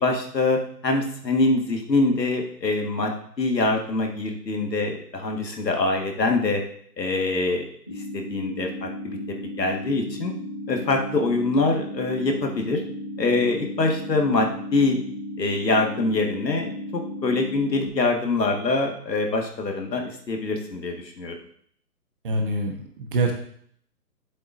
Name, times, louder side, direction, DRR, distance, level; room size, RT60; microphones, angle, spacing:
voice 1, 0.0-3.1 3.4-6.6 7.0-7.6 8.1-9.2 9.6-10.3 10.7-12.8 13.2-15.0 15.4-21.3, left 3 dB, 80° left, 2 dB, 2.0 m, -24 dB
sound 1, 7.9-17.9, left 1 dB, 10° left, 0.6 m, -35 dB
voice 2, 22.2-23.3, right 2 dB, 30° right, 3 dB, 1.3 m, -25 dB
11.0 x 7.6 x 2.7 m, 0.62 s
hypercardioid pair, 155°, 49 cm